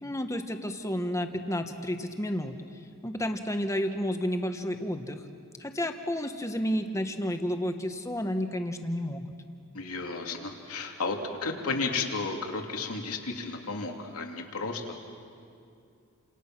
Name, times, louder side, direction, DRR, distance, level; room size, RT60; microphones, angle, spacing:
voice 1, 0.0-2.6 3.0-5.3 5.6-9.3, equal, 15° left, 6 dB, 1.4 m, -31 dB
voice 2, 9.7-15.0, left 3 dB, 85° left, 3 dB, 2.7 m, -33 dB
30.0 x 27.5 x 6.2 m, 2.5 s
head